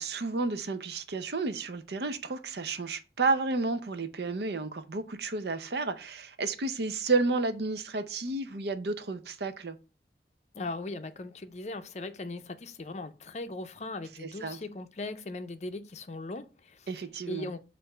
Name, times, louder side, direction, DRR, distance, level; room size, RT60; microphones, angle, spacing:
voice 1, 0.0-9.8 14.2-14.6 16.9-17.5, right 3 dB, 70° right, 0.7 m, -31 dB
voice 2, 10.5-16.9 17.3-17.6, left 2 dB, 40° left, 0.5 m, -39 dB
6.6 x 2.6 x 5.5 m
head